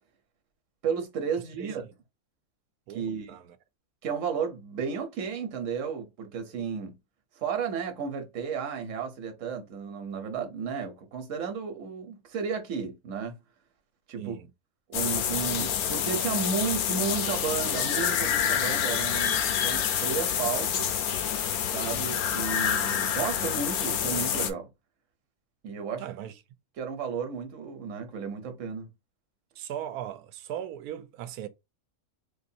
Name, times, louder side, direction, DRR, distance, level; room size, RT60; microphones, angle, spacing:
voice 1, 0.8-1.8 2.9-3.4 4.0-7.0 7.4-13.3 14.1-14.4 14.9-20.9 21.7-24.7 25.6-26.0 26.8-28.9, right 6 dB, 60° right, 1.2 m, -33 dB
voice 2, 2.9-3.6 14.2-14.5 26.0-26.3 29.6-31.5, right 10 dB, 85° right, 1.1 m, -38 dB
sound 1, 14.9-24.5, left 9 dB, 80° left, 1.1 m, -27 dB
4.3 x 2.5 x 2.7 m
omnidirectional pair, 1.6 m